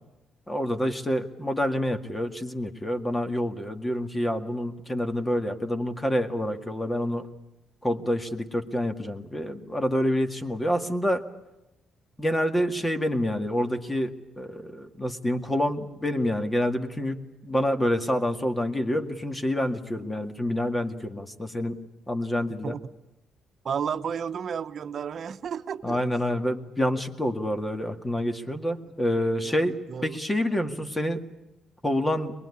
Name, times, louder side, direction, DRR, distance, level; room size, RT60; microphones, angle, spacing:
voice 1, 0.5-7.2 7.8-11.2 12.2-21.8 22.1-22.8 25.8-29.8 30.0-31.2 31.8-32.3, equal, 15° left, 7 dB, 2.0 m, -27 dB
voice 2, 23.6-26.1 29.4-30.2, right 7 dB, 55° right, 11 dB, 1.0 m, -32 dB
23.0 x 21.0 x 9.8 m, 0.93 s
cardioid pair, 90°, 0 cm